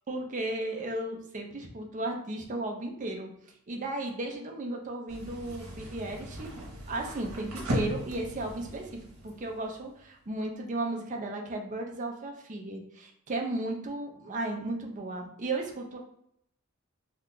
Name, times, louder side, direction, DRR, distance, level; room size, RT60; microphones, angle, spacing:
voice 1, 0.1-3.3 3.7-8.9 9.2-16.0, right 2 dB, 35° right, 2 dB, 0.5 m, -35 dB
sound 1, 5.1-10.2, equal, 70° right, 0.9 m, -38 dB
2.8 x 2.3 x 3.7 m, 0.74 s
head